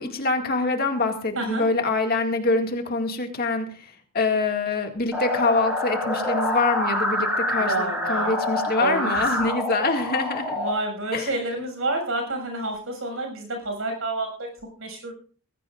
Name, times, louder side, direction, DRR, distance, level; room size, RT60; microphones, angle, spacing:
voice 1, 0.0-10.6 11.1-11.4, left 3 dB, 45° left, 3 dB, 2.1 m, -25 dB
sound 1, 5.1-10.7, left 1 dB, 5° right, 6.5 m, -26 dB
voice 2, 7.6-8.3 8.8-9.2 10.6-14.5 14.8-15.2, right 2 dB, 65° right, 3 dB, 6.6 m, -29 dB
19.5 x 16.5 x 2.5 m, 0.41 s
head